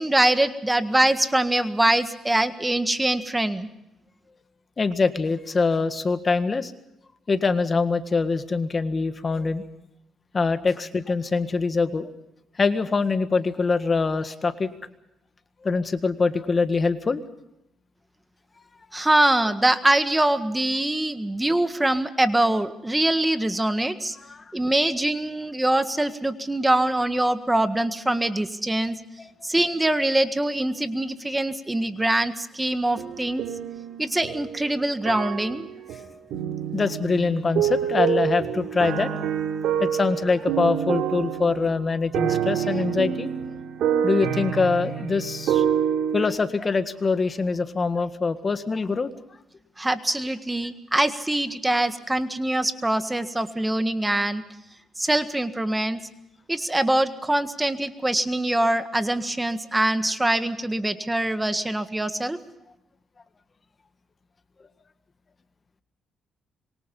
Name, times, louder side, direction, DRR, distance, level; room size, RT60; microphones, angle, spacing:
voice 1, 0.0-3.7 18.9-24.2 24.5-28.9 29.4-33.4 34.0-35.7 49.8-54.4 55.0-56.0 56.5-62.4, right 1 dB, 10° right, 9 dB, 1.7 m, -23 dB
voice 2, 4.8-6.7 7.3-9.6 10.3-12.1 12.6-14.7 15.6-17.2 24.2-24.4 36.7-39.3 39.8-43.3 44.0-45.6 46.1-49.1, left 4 dB, 35° left, 10 dB, 1.7 m, -24 dB
sound 1, 32.9-34.7 35.1-46.3, right 9 dB, 85° right, 3.1 m, -27 dB
26.0 x 23.5 x 5.5 m, 0.85 s
cardioid pair, 90°, 0 cm